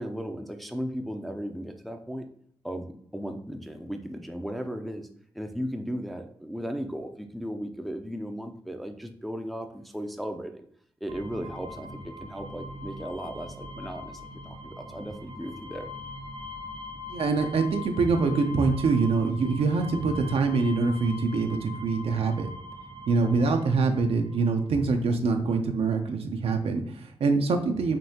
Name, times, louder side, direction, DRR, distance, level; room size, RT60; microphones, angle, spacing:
voice 1, 0.0-2.3 2.6-5.1 5.3-10.7 11.0-15.9, equal, ahead, 5 dB, 0.5 m, -36 dB
sound 1, 11.1-24.5, left 2 dB, 90° right, 1.0 m, -41 dB
voice 2, 17.1-22.5 23.1-28.0, right 4 dB, 70° right, 5 dB, 0.6 m, -25 dB
5.2 x 2.7 x 2.8 m, 0.65 s
cardioid pair, 65°, 10 cm